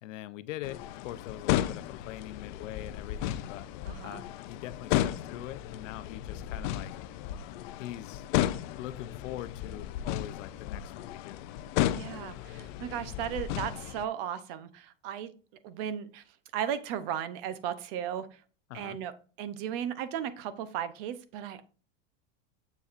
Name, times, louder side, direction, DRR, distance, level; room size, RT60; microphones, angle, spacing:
voice 1, 0.0-3.7 4.0-6.9 7.8-8.3 8.8-11.4 18.7-19.0, left 13 dB, 80° left, 0.7 m, -42 dB
sound 1, 0.6-14.0, left 13 dB, 40° left, 0.4 m, -34 dB
voice 2, 3.9-4.2 11.9-15.3 15.6-16.2 16.5-18.4 18.7-19.1 19.4-21.6, right 9 dB, 45° right, 0.8 m, -35 dB
7.1 x 6.9 x 2.5 m
supercardioid pair, 160°, 37 cm